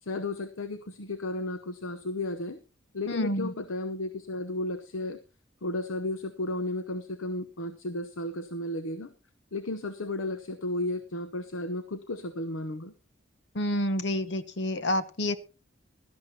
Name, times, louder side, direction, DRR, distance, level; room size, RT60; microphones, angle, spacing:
voice 1, 0.0-2.6 2.9-5.2 5.6-9.1 9.5-12.9, left 2 dB, 90° left, 11 dB, 0.9 m, -33 dB
voice 2, 3.1-3.5 13.5-15.4, left 1 dB, 60° left, 13 dB, 0.9 m, -28 dB
17.0 x 12.5 x 2.8 m, 0.30 s
head